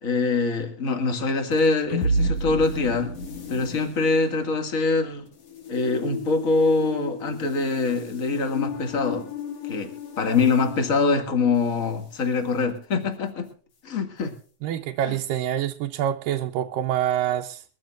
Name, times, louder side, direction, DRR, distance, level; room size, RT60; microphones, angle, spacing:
voice 1, 0.0-3.1 3.5-5.3 5.7-9.3 9.6-13.5 13.8-14.3 15.1-15.2, left 4 dB, 30° left, 6 dB, 2.0 m, -24 dB
sound 1, 1.5-12.0, left 1 dB, 50° left, 3.0 m, -32 dB
voice 2, 14.6-17.6, right 11 dB, 85° right, 3 dB, 2.5 m, -26 dB
23.0 x 14.5 x 2.5 m, 0.39 s
omnidirectional pair, 3.9 m